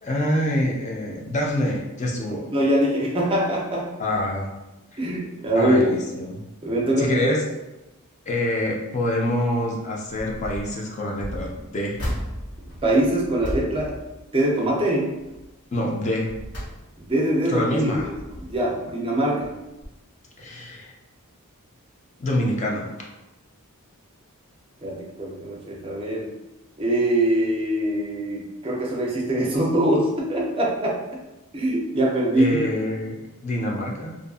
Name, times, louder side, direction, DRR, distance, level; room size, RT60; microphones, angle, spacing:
voice 1, 0.0-2.5 4.0-4.5 4.9-5.0 5.5-6.4 7.0-7.4 8.3-12.0 15.7-16.3 17.5-18.1 20.4-20.9 22.2-22.9 32.4-34.2, left 1 dB, 30° left, -1 dB, 0.5 m, -26 dB
voice 2, 2.5-3.9 5.0-6.0 6.6-7.3 12.8-13.9 14.3-15.2 17.0-18.1 18.4-19.5 24.8-26.3 26.8-31.2 31.5-32.6, right 1 dB, 25° right, -3 dB, 0.5 m, -23 dB
sound 1, 10.2-10.7 11.1-14.8 15.2-15.5 16.0-17.3 17.8-18.7 19.4-19.6 19.8-19.9, equal, 85° left, 1.0 m, -35 dB
2.6 x 2.5 x 2.3 m, 1.0 s
head